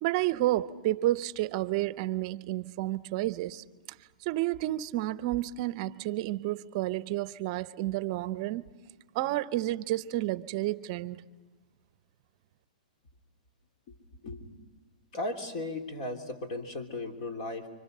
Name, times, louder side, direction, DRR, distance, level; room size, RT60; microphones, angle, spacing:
voice 1, 0.0-3.6 4.2-8.7 9.1-11.2, right 15 dB, 40° right, 0.7 m, -30 dB
voice 2, 15.1-17.7, left 2 dB, 50° left, 3.4 m, -36 dB
30.0 x 25.0 x 5.5 m
hypercardioid pair, 145°, 5 cm